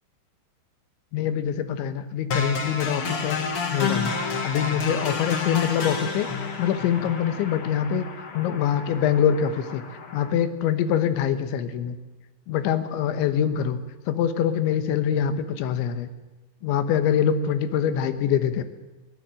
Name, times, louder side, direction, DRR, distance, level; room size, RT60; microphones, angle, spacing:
voice 1, 1.1-3.4 3.7-4.1 4.4-8.1 8.3-9.8 10.1-12.0 12.5-16.1 16.6-18.6, left 8 dB, 85° left, 10 dB, 3.6 m, -24 dB
sound 1, 2.3-10.3, left 5 dB, 55° left, 1.5 m, -30 dB
23.0 x 16.5 x 7.6 m, 1.1 s
omnidirectional pair, 5.2 m